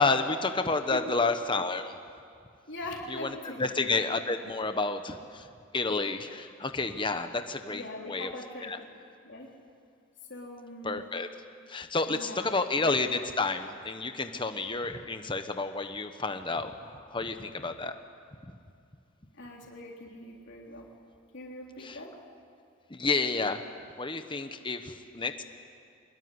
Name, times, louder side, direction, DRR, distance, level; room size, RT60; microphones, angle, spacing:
voice 1, 0.0-2.0 3.1-5.5 5.7-7.8 8.1-8.3 8.6-8.8 10.8-11.3 11.7-17.9 21.8-22.0 22.9-23.6 24.0-25.4, left 3 dB, 25° left, 8 dB, 1.2 m, -30 dB
voice 2, 2.7-3.9 7.7-8.7 9.2-9.5 10.3-11.0 12.1-12.5 19.3-20.9 21.3-22.1, left 1 dB, 60° left, -1 dB, 3.4 m, -42 dB
23.5 x 21.5 x 9.8 m, 2.4 s
head